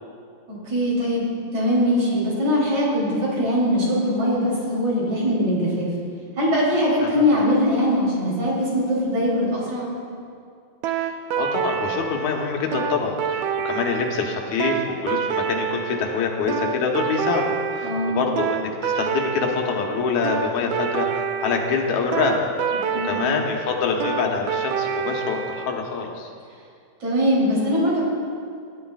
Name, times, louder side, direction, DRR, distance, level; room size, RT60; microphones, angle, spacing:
voice 1, 0.5-5.9 6.4-9.9 17.8-18.2 22.9-23.1 27.0-28.0, equal, 55° right, -6 dB, 4.3 m, -21 dB
sound 1, 10.8-25.7, right 7 dB, 80° right, 1.7 m, -27 dB
voice 2, 10.9-17.5 17.7-22.8 23.0-26.3, left 5 dB, 70° left, 1 dB, 2.2 m, -25 dB
17.5 x 11.5 x 2.4 m, 2.3 s
omnidirectional pair, 3.8 m